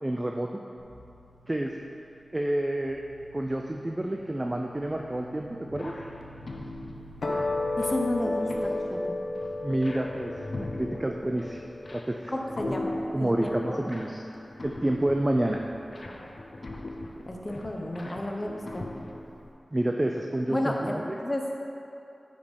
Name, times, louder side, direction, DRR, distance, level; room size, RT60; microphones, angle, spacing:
voice 1, 0.0-0.5 1.5-1.8 2.3-3.0 3.3-5.9 9.6-11.6 11.9-12.3 12.6-12.8 13.1-14.2 14.6-15.6 19.7-21.2, right 1 dB, 20° right, 2 dB, 0.5 m, -29 dB
sound 1, 0.8-10.7, right 1 dB, 80° right, 1.7 m, -52 dB
sound 2, 5.7-19.5, left 2 dB, 55° left, 0.7 m, -40 dB
sound 3, 7.2-13.7, left 2 dB, 90° left, 0.9 m, -33 dB
voice 2, 7.8-9.0 12.3-13.8 16.1-16.3 17.3-18.8 20.5-20.9 21.2-21.4, left 1 dB, 25° left, 1 dB, 0.9 m, -32 dB
9.3 x 5.2 x 5.3 m, 2.8 s
wide cardioid pair, 90°, 0 cm